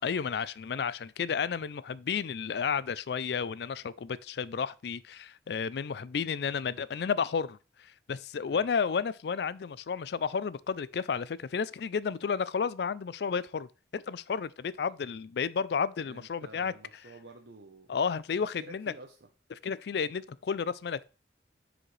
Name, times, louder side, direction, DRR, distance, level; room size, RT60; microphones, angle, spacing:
voice 1, 0.0-16.7 17.9-18.9 19.6-21.0, left 6 dB, 65° left, 0.4 m, -32 dB
voice 2, 16.1-17.9 18.6-19.3, right 2 dB, 75° right, 0.9 m, -50 dB
9.7 x 5.1 x 3.2 m
head